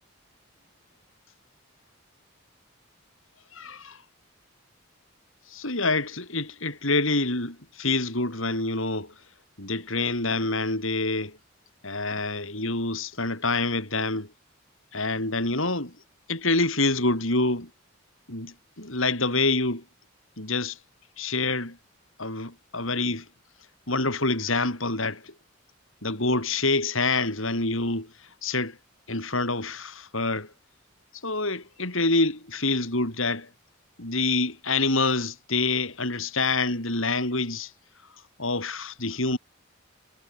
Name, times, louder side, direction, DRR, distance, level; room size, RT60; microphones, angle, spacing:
voice 1, 3.5-4.0 5.5-9.1 9.6-11.4 11.8-14.3 14.9-15.9 16.3-17.7 18.3-19.8 20.4-20.8 21.2-21.8 22.2-23.3 23.9-25.3 26.0-28.1 28.4-28.8 29.1-30.5 31.2-33.5 34.0-37.7 38.4-39.4, left 3 dB, 70° left, 7.4 m, -26 dB
head